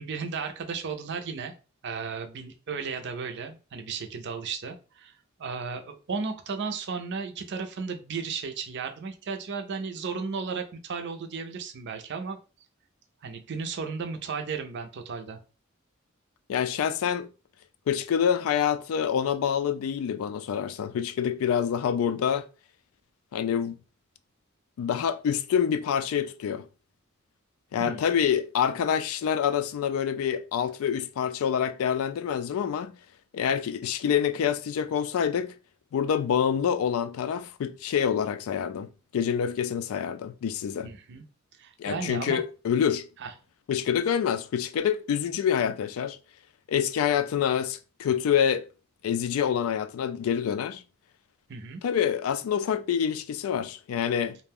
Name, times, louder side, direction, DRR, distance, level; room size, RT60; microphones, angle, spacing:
voice 1, 0.0-1.5 1.8-5.1 5.4-12.4 13.2-15.4 27.8-28.0 40.8-41.2 41.6-42.4 43.2-43.3 51.5-51.8, right 5 dB, 55° right, 0.5 m, -34 dB
voice 2, 16.5-17.3 17.9-22.4 23.3-23.8 24.8-26.7 27.7-32.9 33.3-35.5 35.9-40.9 41.8-43.1 43.7-46.2 46.7-48.7 49.0-50.8 51.8-54.4, left 8 dB, 80° left, 0.3 m, -26 dB
2.5 x 2.1 x 3.4 m
head